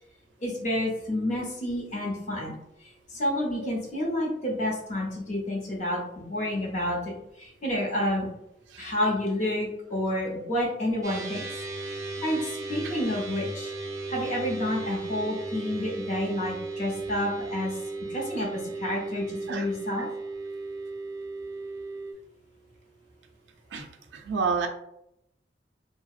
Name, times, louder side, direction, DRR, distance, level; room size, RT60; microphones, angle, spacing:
voice 1, 0.4-2.6 3.1-8.3 8.8-11.5 12.2-13.7 14.1-17.8 18.1-20.1, left 1 dB, 45° left, -1 dB, 0.7 m, -29 dB
sound 1, 11.0-22.1, right 3 dB, 20° right, 0.3 m, -36 dB
voice 2, 24.1-24.7, right 5 dB, 90° right, 4 dB, 0.4 m, -29 dB
2.6 x 2.0 x 2.3 m, 0.80 s
head